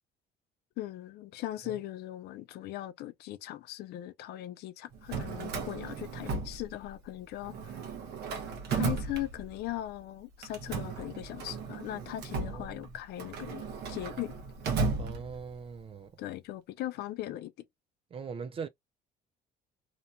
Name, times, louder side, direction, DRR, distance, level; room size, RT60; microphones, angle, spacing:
voice 1, 0.8-7.7 8.7-14.3 16.2-17.5, left 14 dB, 70° left, 0.5 m, -39 dB
Drawer open or close, 4.9-7.1 7.4-9.8 10.4-15.7, right 4 dB, 75° right, 0.9 m, -35 dB
voice 2, 12.5-12.9 15.0-16.1 18.1-18.7, right 5 dB, 35° right, 0.4 m, -41 dB
2.9 x 2.2 x 2.5 m
cardioid pair, 110°, 17 cm